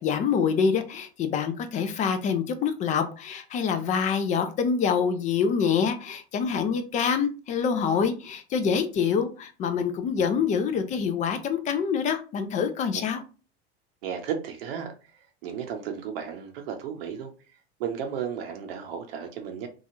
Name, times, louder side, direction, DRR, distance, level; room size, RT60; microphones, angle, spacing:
voice 1, 0.0-13.2, left 6 dB, 25° left, 8 dB, 0.3 m, -26 dB
voice 2, 14.0-17.3 17.8-19.7, right 8 dB, 60° right, 4 dB, 0.7 m, -34 dB
2.9 x 2.4 x 2.6 m, 0.34 s
hypercardioid pair, 95°, 32 cm